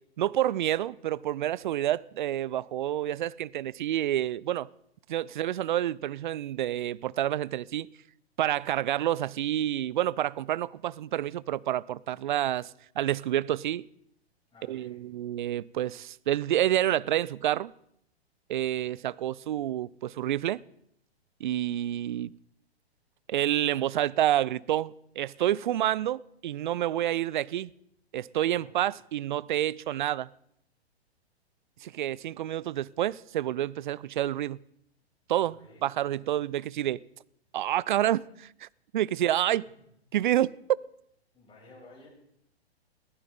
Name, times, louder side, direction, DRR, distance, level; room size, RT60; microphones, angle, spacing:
voice 1, 0.2-4.7 5.1-7.9 8.4-13.8 14.7-17.7 18.5-20.6 21.4-22.3 23.3-27.7 28.1-30.3 31.8-34.6 35.3-37.0 37.5-38.7 38.9-39.6 40.1-40.5, right 12 dB, 50° right, 0.5 m, -28 dB
voice 2, 14.5-15.0 18.8-19.0 28.5-28.7 35.4-35.8 36.1-36.5 41.3-42.1, left 2 dB, 15° left, 7.5 m, -55 dB
21.5 x 15.5 x 3.8 m
figure-of-eight pair, 115°, 33 cm